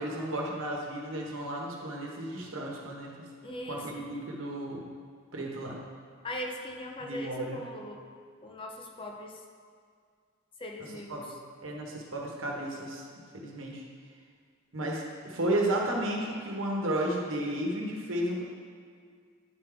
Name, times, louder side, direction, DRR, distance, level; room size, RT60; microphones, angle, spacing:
voice 1, 0.0-3.2 3.7-4.8 5.3-5.8 7.0-7.6 11.1-11.2 11.6-13.0 13.3-13.8 14.7-18.4, right 1 dB, 80° right, -1 dB, 1.1 m, -33 dB
voice 2, 3.4-4.1 6.2-8.0 8.4-9.4 10.6-11.2, left 1 dB, 25° left, 2 dB, 0.5 m, -40 dB
10.5 x 3.6 x 3.5 m, 2.1 s
head